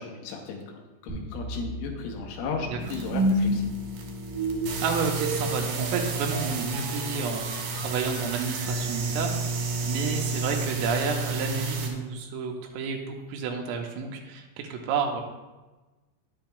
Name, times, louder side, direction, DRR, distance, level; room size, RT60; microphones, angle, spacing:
voice 1, 0.0-3.7, left 4 dB, 80° left, 1 dB, 3.3 m, -35 dB
sound 1, 1.1-10.2, right 1 dB, 5° right, 0.6 m, -33 dB
sound 2, 2.8-11.9, right 3 dB, 75° right, 2.4 m, -32 dB
voice 2, 4.8-7.5 7.7-9.6 9.8-15.2, right 5 dB, 90° right, 2 dB, 3.4 m, -30 dB
10.5 x 8.9 x 2.3 m, 1.2 s
omnidirectional pair, 5.9 m